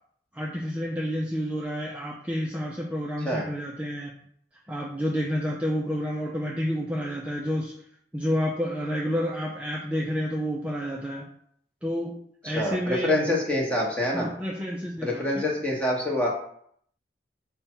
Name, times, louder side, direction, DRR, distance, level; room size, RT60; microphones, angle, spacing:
voice 1, 0.3-4.1 4.7-7.7 8.1-11.3 11.8-12.2 12.4-13.3 14.1-15.2, equal, 10° right, -3 dB, 0.4 m, -29 dB
voice 2, 12.4-14.3 15.0-16.3, left 1 dB, 10° left, -2 dB, 0.9 m, -26 dB
5.0 x 2.2 x 4.3 m, 0.66 s
head